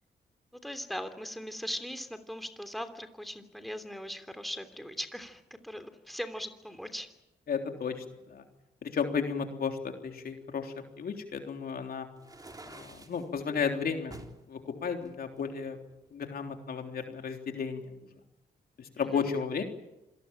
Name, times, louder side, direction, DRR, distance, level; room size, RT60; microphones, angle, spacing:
voice 1, 0.6-7.1 19.0-19.3, equal, ahead, 7 dB, 3.1 m, -39 dB
voice 2, 7.5-8.4 8.8-12.1 12.7-14.1 14.5-15.8 16.1-17.9 18.8-19.6, left 6 dB, 65° left, 4 dB, 3.6 m, -33 dB
sound 1, 12.2-13.3 14.1-14.4 15.0-16.1, right 2 dB, 20° right, 3.7 m, -48 dB
27.0 x 19.0 x 9.0 m, 0.94 s
cardioid pair, 65°, 17 cm